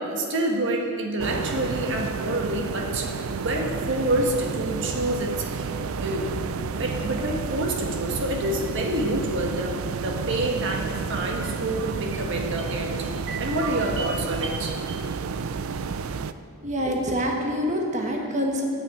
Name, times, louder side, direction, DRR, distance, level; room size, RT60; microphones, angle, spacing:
voice 1, 0.0-5.7 6.0-15.2, right 1 dB, 65° right, 1 dB, 1.3 m, -28 dB
sound 1, 1.2-16.3, right 5 dB, 85° right, 0.5 m, -31 dB
voice 2, 16.6-18.6, equal, 35° right, 1 dB, 1.3 m, -26 dB
9.2 x 8.7 x 7.9 m, 2.2 s
head